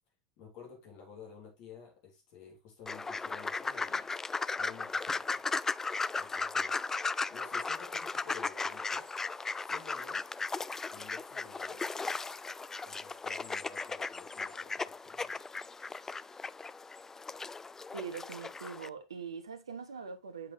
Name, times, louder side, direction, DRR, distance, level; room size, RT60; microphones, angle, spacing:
voice 1, 0.4-4.1 4.6-5.4 6.2-6.8 7.3-9.1 9.6-10.3 10.9-11.9 12.9-15.3, left 6 dB, 55° left, 3.5 m, -52 dB
sound 1, 2.9-18.9, left 4 dB, 15° left, 0.4 m, -36 dB
voice 2, 17.9-20.5, right 6 dB, 85° right, 1.1 m, -42 dB
8.1 x 5.4 x 3.3 m
hypercardioid pair, 80°, 3 cm